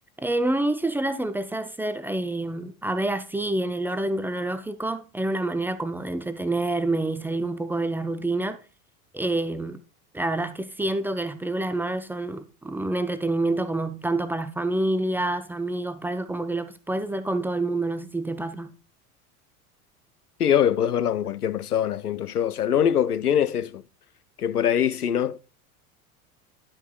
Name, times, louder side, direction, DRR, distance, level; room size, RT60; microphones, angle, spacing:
voice 1, 0.2-8.6 9.1-9.8 10.1-18.7, right 2 dB, 5° right, 0.4 m, -27 dB
voice 2, 20.4-23.8 24.4-25.4, left 9 dB, 80° left, 0.6 m, -23 dB
11.0 x 8.1 x 2.3 m
figure-of-eight pair, 75°, 45 cm